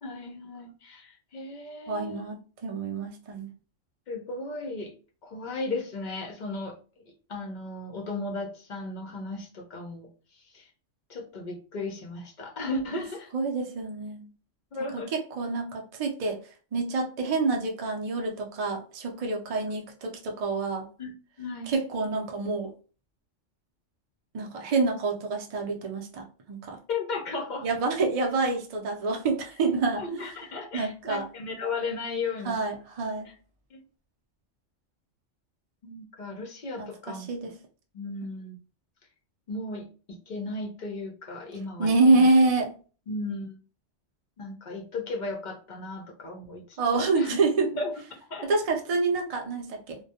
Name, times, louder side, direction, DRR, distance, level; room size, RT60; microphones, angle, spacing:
voice 1, 0.0-2.3 4.1-4.9 5.2-6.8 7.3-10.7 11.1-13.3 14.7-15.1 21.0-21.1 21.4-21.7 26.9-27.7 29.9-32.6 33.2-33.3 33.7-33.8 35.8-37.3 37.9-38.6 39.5-42.3 43.1-43.6 44.4-46.8 47.2-47.4 47.8-47.9 48.3-48.5, left 2 dB, 55° left, 3 dB, 0.5 m, -35 dB
voice 2, 1.9-3.5 13.3-14.2 14.9-16.4 16.7-20.9 21.7-22.7 24.3-26.8 27.6-30.0 30.7-31.2 32.4-33.3 36.8-37.5 41.8-42.7 46.8-47.7 48.5-50.0, right 3 dB, 50° right, 2 dB, 0.4 m, -27 dB
2.2 x 2.1 x 2.7 m, 0.36 s
omnidirectional pair, 1.3 m